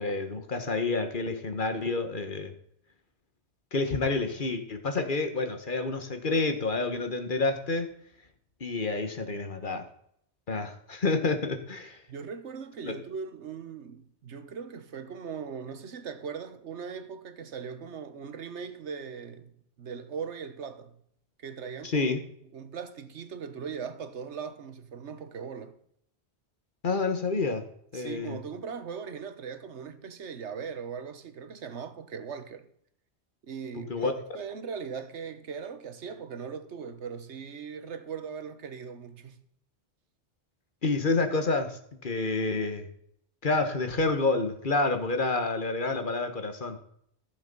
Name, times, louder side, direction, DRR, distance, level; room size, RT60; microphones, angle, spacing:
voice 1, 0.0-2.5 3.7-7.9 8.6-9.9 10.5-12.0 12.8-12.9 21.8-22.2 26.8-27.6 27.9-28.4 33.9-34.1 40.8-42.9 43.4-46.8, left 3 dB, 50° left, 1.4 m, -28 dB
voice 2, 12.1-19.5 19.8-21.0 21.4-22.1 22.5-25.8 27.9-32.7 33.5-39.4, right 6 dB, 85° right, 1.4 m, -39 dB
14.0 x 7.2 x 5.3 m
omnidirectional pair, 1.1 m